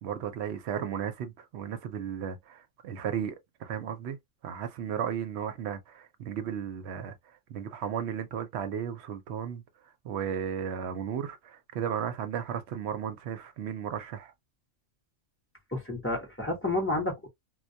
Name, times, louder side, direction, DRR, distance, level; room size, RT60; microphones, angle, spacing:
voice 1, 0.0-4.2 4.4-7.1 7.5-9.6 10.0-14.3, right 8 dB, 70° right, 0.8 m, -34 dB
voice 2, 15.7-17.3, left 2 dB, 15° left, 0.7 m, -30 dB
2.2 x 2.2 x 2.6 m
omnidirectional pair, 1.3 m